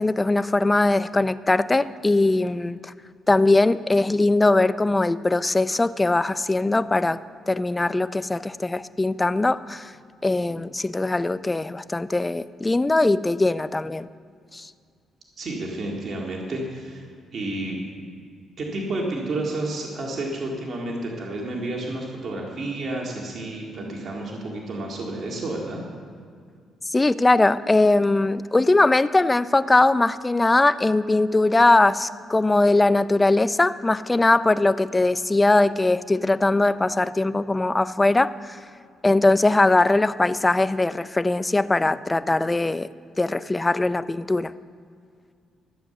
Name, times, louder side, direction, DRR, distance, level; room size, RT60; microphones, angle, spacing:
voice 1, 0.0-2.9 3.3-7.2 7.5-9.9 10.2-14.1 14.5-14.7 26.9-38.6 39.0-42.9 43.2-44.5, left 2 dB, 15° left, 15 dB, 0.4 m, -20 dB
voice 2, 15.4-17.0 17.3-18.1 18.6-25.8, right 2 dB, 50° right, -1 dB, 2.0 m, -30 dB
13.5 x 7.5 x 6.8 m, 2.2 s
cardioid pair, 90°, 0 cm